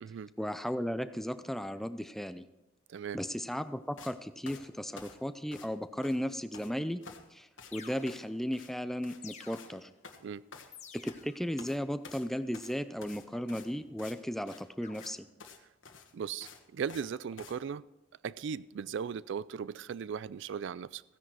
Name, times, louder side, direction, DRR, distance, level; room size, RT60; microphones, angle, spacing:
voice 1, 0.4-2.4 3.1-7.0 7.3-9.9 11.0-15.3, equal, ahead, 11 dB, 0.5 m, -35 dB
sound 1, 4.0-4.2 4.5-5.8 6.0-6.7 7.0-7.3 7.6-7.8 8.1-8.3 8.5-8.7 9.0-9.2 9.5-9.7 10.0-11.2 11.6-11.8 12.0-14.2 14.5-14.6 14.9-15.1 15.4-15.6 15.8-17.1 17.4-17.6, left 5 dB, 70° left, 1.4 m, -50 dB
sound 2, 7.7-8.5 9.2-10.1 10.7-11.5 13.3-14.1 14.8-15.1, left 6 dB, 35° left, 1.2 m, -52 dB
voice 2, 16.1-17.8 18.2-21.0, right 7 dB, 65° right, 19 dB, 0.3 m, -37 dB
15.5 x 10.0 x 4.7 m, 0.96 s
head